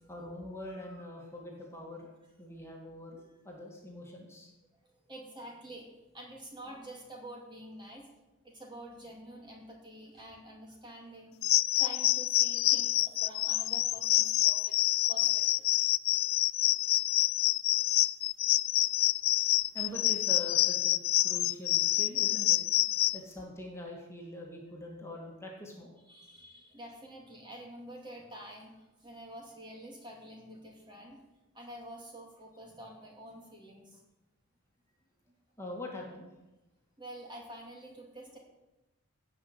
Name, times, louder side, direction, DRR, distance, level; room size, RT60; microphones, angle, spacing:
voice 1, 0.1-2.1 2.4-4.5 19.7-20.9 21.2-22.6 23.1-25.9 35.6-36.3, left 1 dB, 10° left, -1 dB, 2.3 m, -43 dB
voice 2, 5.1-8.1 8.4-11.4 11.7-14.8 15.1-15.6 23.0-23.1 26.1-31.2 31.5-34.0 35.3-35.4 37.0-38.4, right 1 dB, 20° right, 0 dB, 2.4 m, -48 dB
sound 1, 11.4-23.2, left 16 dB, 65° left, 0.4 m, -27 dB
18.0 x 6.0 x 8.1 m, 1.0 s
head